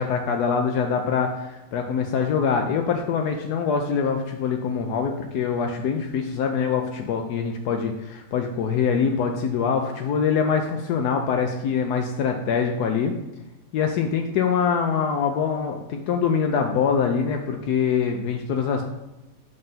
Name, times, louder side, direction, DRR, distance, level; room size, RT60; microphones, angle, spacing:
voice 1, 0.0-13.2 13.7-18.8, left 6 dB, 85° left, 4 dB, 0.8 m, -24 dB
5.4 x 3.9 x 5.6 m, 1.0 s
omnidirectional pair, 2.3 m